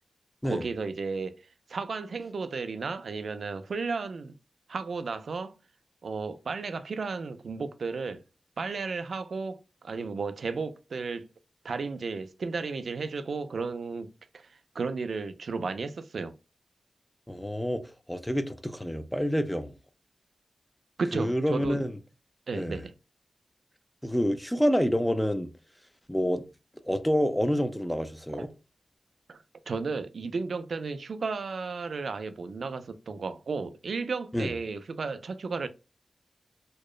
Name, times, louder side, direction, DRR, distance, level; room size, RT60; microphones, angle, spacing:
voice 1, 0.4-1.4 1.7-4.3 4.7-5.5 6.0-8.2 8.6-11.3 11.6-16.4 21.0-21.8 22.5-22.9 28.3-28.5 29.3-35.7, right 4 dB, 80° right, 0.3 m, -34 dB
voice 2, 17.3-19.7 21.1-22.0 22.5-22.8 24.0-25.5 26.1-26.4 26.8-28.5 34.3-34.5, equal, 5° left, 0.4 m, -28 dB
2.9 x 2.0 x 2.3 m
wide cardioid pair, 80°, 0 cm